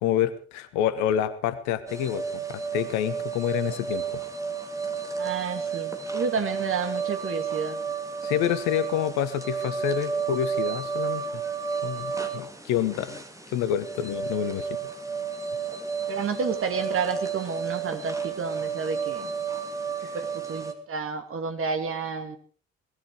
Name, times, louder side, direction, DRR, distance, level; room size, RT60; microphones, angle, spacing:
voice 1, 0.0-4.0 8.2-11.4 11.8-13.2 13.5-14.8 20.0-20.1, left 10 dB, 65° left, 14 dB, 1.4 m, -28 dB
sound 1, 1.9-20.7, right 6 dB, 10° right, 2.8 m, -32 dB
voice 2, 5.2-7.8 16.1-19.3 20.1-22.4, right 5 dB, 40° right, 8 dB, 2.6 m, -30 dB
18.5 x 14.0 x 4.8 m, 0.40 s
figure-of-eight pair, 45°, 31 cm